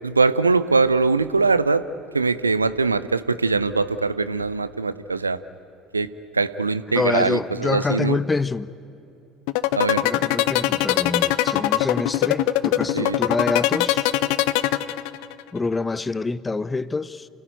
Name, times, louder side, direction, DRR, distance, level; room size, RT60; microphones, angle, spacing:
voice 1, 0.0-1.8 2.1-5.4 5.9-6.1 6.3-8.2 9.7-10.0 12.9-13.2, right 4 dB, 85° right, 0.5 m, -21 dB
voice 2, 6.9-8.7 10.0-14.1 15.5-17.3, left 3 dB, 20° left, 0.7 m, -26 dB
sound 1, 9.5-15.4, left 15 dB, 60° left, 0.7 m, -21 dB
29.0 x 16.5 x 9.2 m
figure-of-eight pair, 60°, 0 cm